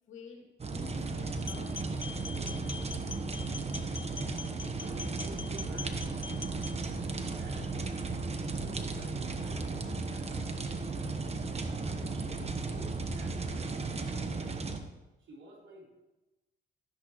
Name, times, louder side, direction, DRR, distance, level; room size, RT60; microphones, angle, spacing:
voice 1, 0.1-1.9 2.5-2.8, left 4 dB, 75° left, 1 dB, 2.4 m, -50 dB
sound 1, 0.6-14.8, right 3 dB, 30° right, 1.1 m, -35 dB
sound 2, 1.5-6.7, left 5 dB, 25° left, 0.4 m, -44 dB
voice 2, 2.3-3.0 3.4-3.9 4.8-7.1 7.4-11.1 11.8-14.8 15.2-15.9, right 2 dB, 70° right, -3 dB, 3.7 m, -53 dB
13.5 x 10.5 x 3.1 m, 1.1 s
cardioid pair, 90°, 20 cm